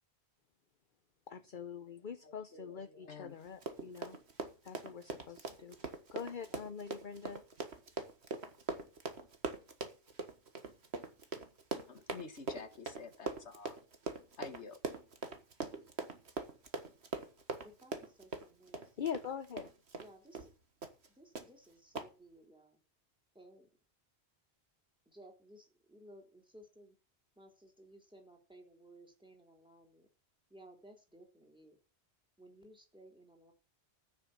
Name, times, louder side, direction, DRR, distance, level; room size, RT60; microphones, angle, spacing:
voice 1, 1.3-4.2 4.6-5.8 6.1-7.4 19.0-19.7, left 7 dB, 50° left, 1.0 m, -43 dB
voice 2, 2.2-3.4 11.9-13.8 14.4-14.8, left 4 dB, 85° left, 1.8 m, -49 dB
Run, 3.5-20.1 20.3-20.5 20.8-21.1 21.3-21.5 21.9-22.1, right 3 dB, 70° right, 1.8 m, -42 dB
voice 3, 17.6-18.8 20.0-20.5 21.1-22.8 23.3-23.7 25.1-27.0 27.4-30.1 30.5-31.8 32.4-33.5, right 1 dB, 5° right, 3.7 m, -58 dB
14.5 x 6.6 x 7.3 m
omnidirectional pair, 1.1 m